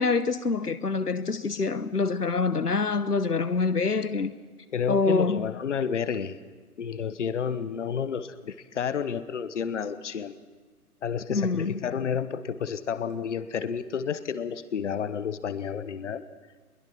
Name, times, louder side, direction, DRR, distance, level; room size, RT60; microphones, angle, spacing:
voice 1, 0.0-4.3 4.9-5.4 11.3-11.7, left 4 dB, 85° left, 1.0 m, -26 dB
voice 2, 4.7-6.4 6.8-10.4 11.0-16.2, left 7 dB, 50° left, 1.1 m, -30 dB
22.5 x 21.0 x 6.0 m
figure-of-eight pair, 130°, 45 cm